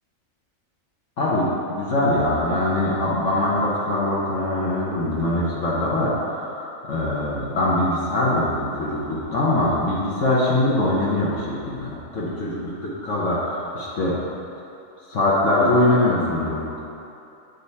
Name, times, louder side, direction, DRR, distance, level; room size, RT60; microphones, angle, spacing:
voice 1, 1.2-14.2 15.1-16.8, left 1 dB, 65° left, -7 dB, 1.3 m, -22 dB
8.4 x 4.1 x 4.1 m, 2.8 s
omnidirectional pair, 1.5 m